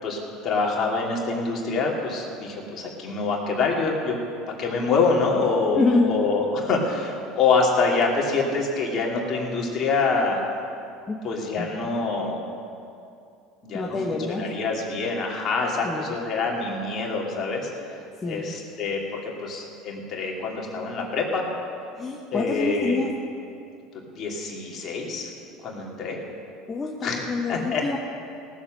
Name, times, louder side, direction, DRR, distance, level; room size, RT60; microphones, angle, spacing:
voice 1, 0.0-4.2 4.6-5.8 6.1-10.5 11.2-12.4 13.6-17.7 18.2-21.4 22.3-23.0 24.1-25.3 25.6-26.2 27.0-27.2 27.5-28.0, left 4 dB, 45° left, -1 dB, 2.9 m, -25 dB
voice 2, 5.8-6.2 11.1-11.2 11.6-11.7 13.7-14.4 15.8-16.0 18.2-18.4 22.0-23.2 26.7-28.0, left 3 dB, 20° left, -1 dB, 1.2 m, -26 dB
18.0 x 7.4 x 6.4 m, 2.6 s
supercardioid pair, 90°, 0 cm